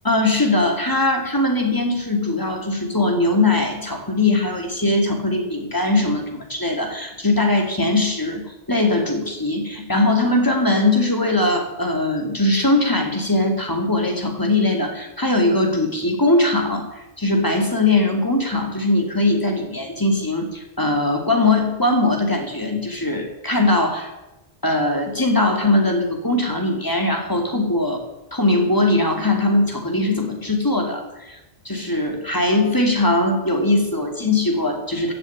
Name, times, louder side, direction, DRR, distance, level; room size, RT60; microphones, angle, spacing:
voice 1, 0.0-16.9 17.2-24.1 24.6-28.0 28.3-31.4 31.6-35.1, left 2 dB, 20° left, 3 dB, 2.4 m, -20 dB
15.5 x 6.9 x 8.6 m, 0.98 s
omnidirectional pair, 1.1 m